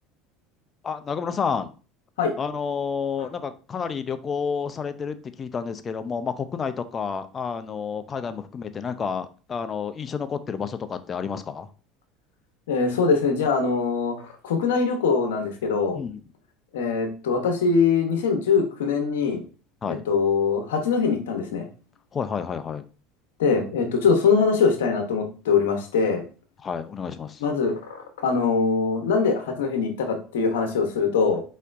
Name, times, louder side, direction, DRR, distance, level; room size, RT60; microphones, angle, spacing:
voice 1, 0.8-1.7 2.4-11.7 15.9-16.2 19.8-20.0 22.1-22.8 26.6-27.4, left 6 dB, 35° left, 11 dB, 0.5 m, -30 dB
voice 2, 12.7-14.1 14.4-16.0 16.7-19.4 19.9-21.7 23.4-26.2 27.4-31.4, left 5 dB, 85° left, 5 dB, 1.0 m, -22 dB
4.2 x 4.1 x 2.6 m, 0.36 s
hypercardioid pair, 85°, 0 cm